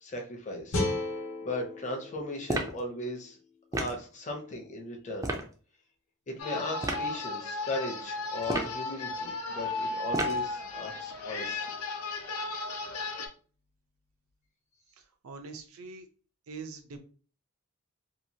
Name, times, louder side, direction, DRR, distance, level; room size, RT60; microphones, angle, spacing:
voice 1, 0.0-0.8 1.4-3.4 3.7-5.3 6.3-11.6, left 1 dB, 35° left, 1 dB, 0.6 m, -37 dB
sound 1, 0.7-3.8, left 2 dB, 65° left, 0.9 m, -35 dB
sound 2, 2.5-2.8 3.7-4.0 5.2-5.5 6.8-7.1 8.4-8.8 10.1-10.5, right 2 dB, 15° right, 0.4 m, -31 dB
sound 3, 6.4-13.3, left 3 dB, 85° left, 0.6 m, -35 dB
voice 2, 15.0-16.1 16.5-17.0, right 4 dB, 65° right, 6 dB, 0.5 m, -43 dB
2.8 x 2.4 x 2.7 m, 0.40 s
head